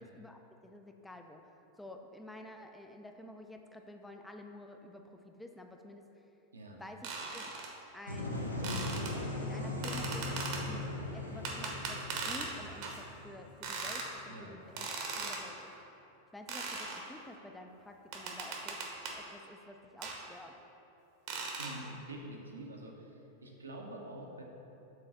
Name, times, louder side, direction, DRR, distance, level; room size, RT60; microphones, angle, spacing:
voice 1, 0.0-1.4 1.8-6.0 6.8-7.5 7.9-8.5 9.4-10.9 11.1-14.9 15.2-15.7 16.3-18.8 19.1-20.6, left 1 dB, 5° left, 4 dB, 0.4 m, -50 dB
sound 1, 7.0-7.7 8.6-9.1 9.8-10.6 11.4-12.5 12.8-13.0 13.6-14.1 14.8-15.4 16.5-17.0 18.1-19.2 20.0-20.2 21.3-21.8, right 4 dB, 45° right, 0.8 m, -39 dB
sound 2, 8.1-13.9, left 2 dB, 85° left, 0.7 m, -39 dB
voice 2, 21.6-24.4, right 1 dB, 75° right, 0 dB, 0.8 m, -46 dB
4.8 x 3.9 x 5.6 m, 2.9 s
figure-of-eight pair, 90°, 0 cm